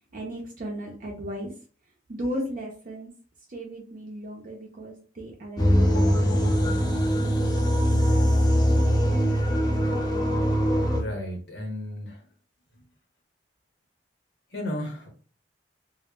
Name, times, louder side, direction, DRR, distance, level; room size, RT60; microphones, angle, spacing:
voice 1, 0.1-1.5 2.1-3.1 3.5-6.5, equal, 50° right, -1 dB, 0.5 m, -36 dB
sound 1, 5.6-11.0, equal, 25° left, 0.6 m, -22 dB
voice 2, 11.0-12.2 14.5-15.1, left 1 dB, 70° left, 2 dB, 0.9 m, -33 dB
2.0 x 2.0 x 3.5 m, 0.41 s
head